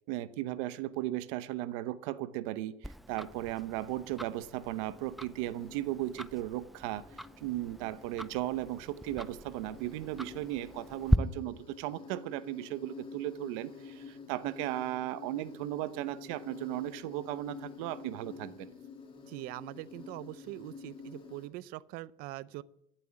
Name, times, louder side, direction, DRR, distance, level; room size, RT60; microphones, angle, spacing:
voice 1, 0.1-7.0 7.4-18.7, right 15 dB, 85° right, 0.9 m, -36 dB
Tick-tock, 2.8-11.2, equal, ahead, 0.4 m, -37 dB
Insect, 4.8-21.5, left 5 dB, 35° left, 2.9 m, -50 dB
voice 2, 19.2-22.6, right 17 dB, 70° right, 0.6 m, -43 dB
14.0 x 7.6 x 8.6 m
cardioid pair, 115°, 16 cm